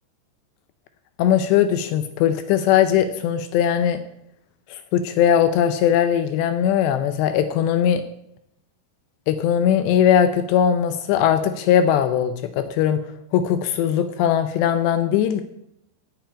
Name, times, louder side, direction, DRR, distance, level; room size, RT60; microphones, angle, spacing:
voice 1, 1.2-4.0 4.7-8.0 9.3-13.0 13.3-15.4, left 9 dB, 80° left, 10 dB, 2.7 m, -19 dB
9.2 x 7.0 x 8.6 m, 0.78 s
omnidirectional pair, 5.2 m